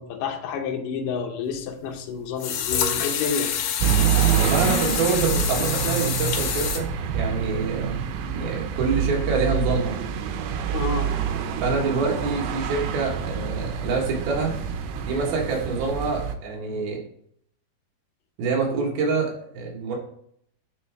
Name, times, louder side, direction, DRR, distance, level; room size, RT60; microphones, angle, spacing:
voice 1, 0.0-3.5 10.7-11.2, left 6 dB, 75° left, 2.1 m, -29 dB
sound 1, 1.6-1.7 2.4-6.8, left 8 dB, 90° left, 2.9 m, -27 dB
sound 2, 3.8-16.4, right 7 dB, 90° right, 2.8 m, -27 dB
voice 2, 4.4-6.9 7.1-8.0 8.3-10.0 11.6-14.5 15.1-17.0 18.4-20.0, right 4 dB, 70° right, 3.2 m, -26 dB
9.4 x 4.5 x 3.4 m
omnidirectional pair, 4.6 m